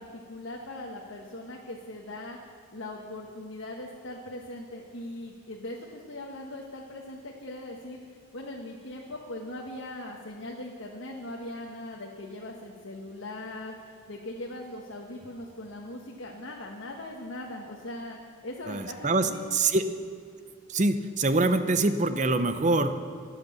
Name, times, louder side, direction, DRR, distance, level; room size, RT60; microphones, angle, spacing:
voice 1, 0.0-2.4 2.7-8.0 8.3-18.2 18.4-19.6, left 1 dB, 65° left, -1 dB, 1.4 m, -40 dB
voice 2, 18.7-19.8 20.7-22.9, right 2 dB, 35° right, 10 dB, 0.7 m, -25 dB
22.5 x 8.1 x 6.9 m, 2.3 s
head